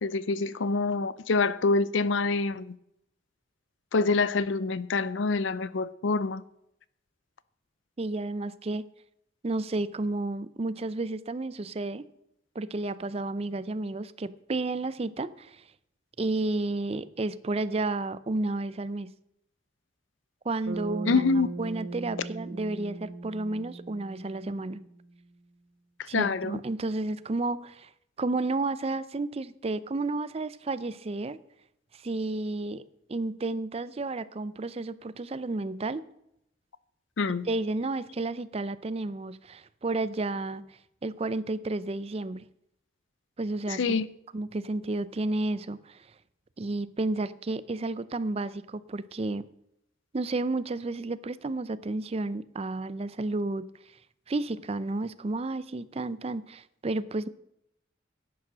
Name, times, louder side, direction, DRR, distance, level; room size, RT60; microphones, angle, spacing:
voice 1, 0.0-2.7 3.9-6.4 21.1-21.5 26.0-26.6 37.2-37.5 43.7-44.1, left 4 dB, 80° left, 17 dB, 0.6 m, -26 dB
voice 2, 8.0-8.8 9.4-12.0 12.6-15.6 16.2-19.1 20.4-21.2 21.6-24.8 26.1-27.9 28.2-31.4 31.9-32.8 33.1-36.0 37.5-40.6 41.0-42.4 43.4-44.0 44.3-46.1 46.6-49.4 50.1-53.7 54.3-57.3, right 2 dB, 35° right, 16 dB, 0.5 m, -31 dB
Bass guitar, 20.7-25.1, right 3 dB, 85° right, 1.3 m, -39 dB
11.0 x 8.7 x 6.1 m, 0.78 s
head